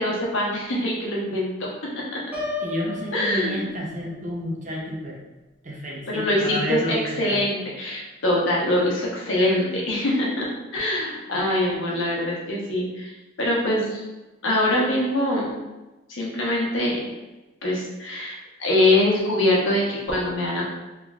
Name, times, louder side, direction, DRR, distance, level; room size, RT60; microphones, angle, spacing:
voice 1, 0.0-1.7 2.1-2.2 3.1-3.6 6.1-10.5 10.7-14.0 14.4-15.5 16.1-17.0 17.6-20.6, left 1 dB, 85° left, -4 dB, 0.9 m, -23 dB
Piano, 2.3-4.2, left 3 dB, 10° right, 0.9 m, -33 dB
voice 2, 2.6-5.2 5.6-7.4, equal, 40° right, -2 dB, 0.6 m, -30 dB
3.4 x 3.0 x 2.3 m, 1.1 s
head